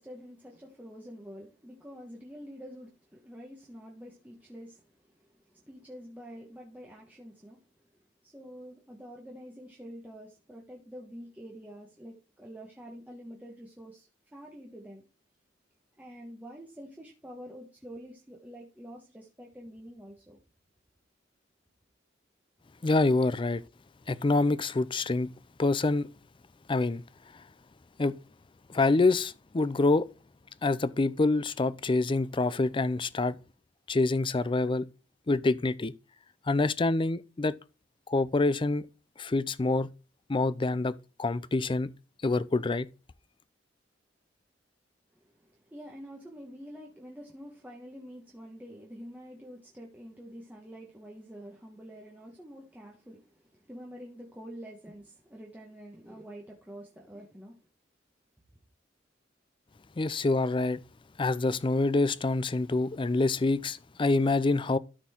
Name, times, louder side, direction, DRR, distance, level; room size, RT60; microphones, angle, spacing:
voice 1, 0.0-7.7 8.2-15.0 16.0-20.4 45.1-57.7, equal, 10° right, 1.4 m, -47 dB
voice 2, 22.8-23.6 24.1-25.3 25.6-26.1 26.7-27.0 28.0-28.2 28.7-30.1 30.6-33.4 33.9-34.9 35.3-35.9 36.5-37.5 38.1-38.8 39.2-39.9 40.3-41.9 42.2-42.9 60.0-60.8 61.2-64.8, left 3 dB, 25° left, 0.5 m, -26 dB
13.0 x 4.4 x 4.4 m
head